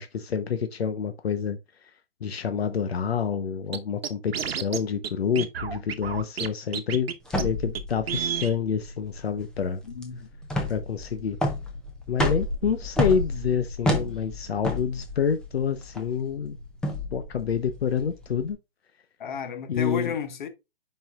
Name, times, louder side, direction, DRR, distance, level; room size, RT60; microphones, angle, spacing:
voice 1, 0.0-1.6 2.2-7.1 7.4-9.8 10.7-11.4 12.1-16.6 17.1-18.6 19.7-20.1, left 7 dB, 85° left, 0.9 m, -28 dB
Scratching (performance technique), 3.7-3.8 4.0-4.8 5.0-5.1 5.4-6.5 6.7-7.1 7.4-7.5 7.7-7.8 8.1-8.5, right 7 dB, 75° right, 1.0 m, -30 dB
sound 1, 7.3-18.5, left 1 dB, ahead, 0.5 m, -30 dB
voice 2, 9.8-10.3 19.2-20.5, left 7 dB, 50° left, 1.4 m, -32 dB
7.4 x 5.5 x 2.4 m
hypercardioid pair, 145°, 30 cm